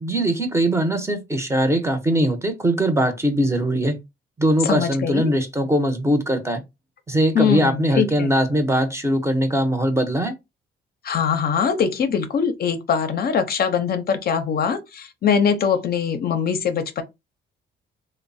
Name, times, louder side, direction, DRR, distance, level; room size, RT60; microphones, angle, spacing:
voice 1, 0.0-4.0 4.4-6.6 7.1-10.3, right 1 dB, 15° right, 0.6 m, -21 dB
voice 2, 4.6-5.3 7.3-8.3 11.0-17.0, left 7 dB, 50° left, 0.5 m, -22 dB
3.0 x 2.0 x 2.6 m
cardioid pair, 90°, 20 cm